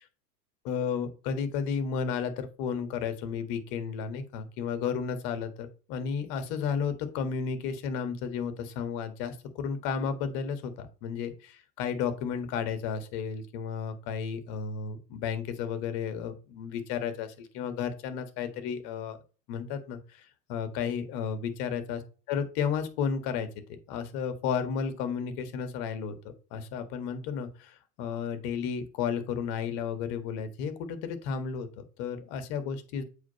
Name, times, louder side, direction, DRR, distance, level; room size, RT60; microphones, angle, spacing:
voice 1, 0.6-19.2 19.5-22.0 22.3-23.5 23.9-26.2 26.5-33.0, left 6 dB, 50° left, 9 dB, 1.7 m, -33 dB
8.0 x 4.6 x 4.1 m, 0.36 s
figure-of-eight pair, 85°, 49 cm